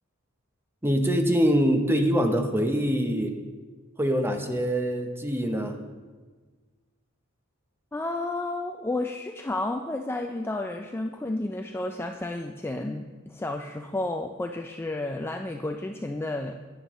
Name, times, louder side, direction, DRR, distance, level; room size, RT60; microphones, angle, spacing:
voice 1, 0.8-3.4 4.0-5.8, equal, 10° right, 5 dB, 0.7 m, -24 dB
voice 2, 7.9-16.6, left 2 dB, 10° left, 3 dB, 0.3 m, -31 dB
10.0 x 9.5 x 3.1 m, 1.4 s
head